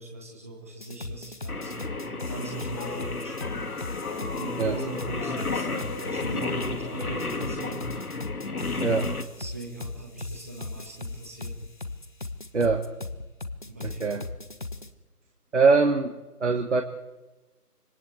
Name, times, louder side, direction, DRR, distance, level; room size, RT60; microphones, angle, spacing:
voice 1, 0.0-3.6 4.3-7.9 8.4-11.6 13.7-14.2, right 2 dB, 10° right, 0 dB, 1.1 m, -40 dB
sound 1, 0.8-14.9, left 3 dB, 30° left, 1.0 m, -38 dB
Singing, 1.5-9.2, left 3 dB, 65° left, 2.2 m, -33 dB
sound 2, 2.7-8.0, left 2 dB, 10° left, 2.9 m, -41 dB
voice 2, 8.8-9.1 12.5-12.9 13.8-14.2 15.5-16.8, right 4 dB, 45° right, 5 dB, 1.6 m, -23 dB
26.0 x 19.0 x 8.1 m, 1.2 s
figure-of-eight pair, 160°, 47 cm